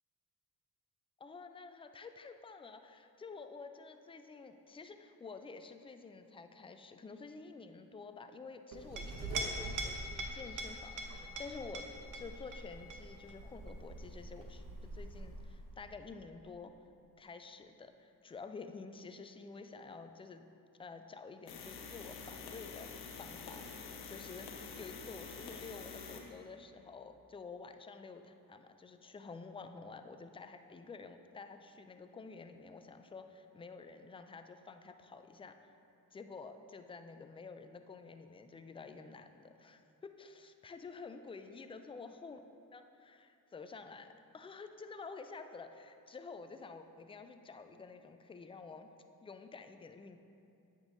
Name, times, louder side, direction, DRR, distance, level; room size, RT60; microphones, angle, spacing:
voice 1, 1.2-16.7 17.2-20.5 20.8-35.7 36.1-42.4 42.7-48.9 49.2-50.2, left 4 dB, 15° left, 7 dB, 0.3 m, -50 dB
Chink clink, 8.7-15.8, right 1 dB, 55° right, 0.9 m, -43 dB
sound 1, 21.5-26.3, left 5 dB, 80° left, 0.8 m, -47 dB
8.8 x 5.3 x 2.7 m, 2.6 s
supercardioid pair, 65°, 38 cm